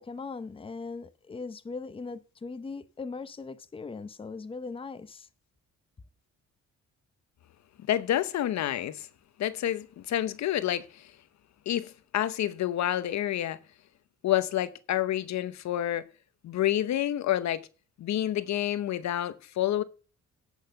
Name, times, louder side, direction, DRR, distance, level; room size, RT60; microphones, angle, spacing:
voice 1, 0.0-5.3, left 4 dB, 20° left, 0.7 m, -39 dB
voice 2, 7.9-9.1 9.4-11.1 11.7-13.6 14.2-16.1 16.4-17.7 18.0-19.8, left 12 dB, 65° left, 0.8 m, -28 dB
10.5 x 6.4 x 6.5 m
cardioid pair, 90°, 30 cm